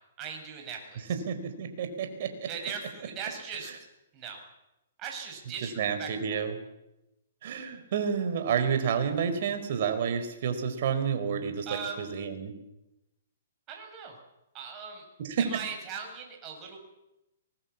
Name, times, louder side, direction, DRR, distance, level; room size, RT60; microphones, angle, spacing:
voice 1, 0.2-1.1 2.5-3.7 4.1-4.4 5.0-5.7 6.0-6.4 11.7-12.1 13.7-14.2 14.5-15.0 15.4-16.8, right 6 dB, 30° right, 2 dB, 7.5 m, -39 dB
voice 2, 1.1-2.3 5.8-6.5 7.4-11.7 12.0-12.6 15.2-15.5, right 7 dB, 55° right, 7 dB, 4.7 m, -29 dB
23.5 x 21.5 x 7.3 m, 0.94 s
hypercardioid pair, 130°, 0 cm